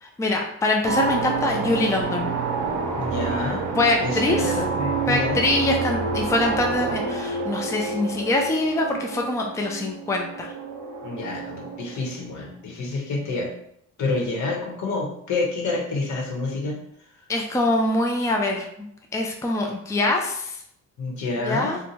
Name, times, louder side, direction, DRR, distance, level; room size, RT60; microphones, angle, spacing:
voice 1, 0.0-2.3 3.8-4.6 5.1-10.5 17.3-18.6 19.1-20.6 21.4-21.8, left 2 dB, 10° left, 1 dB, 0.5 m, -24 dB
sound 1, 0.8-12.3, right 4 dB, 80° right, 0.7 m, -28 dB
voice 2, 3.0-3.7 4.0-5.5 11.0-13.5 14.0-16.8 21.0-21.8, left 3 dB, 70° left, -1 dB, 1.1 m, -28 dB
2.7 x 2.2 x 4.0 m, 0.72 s
cardioid pair, 90°, 30 cm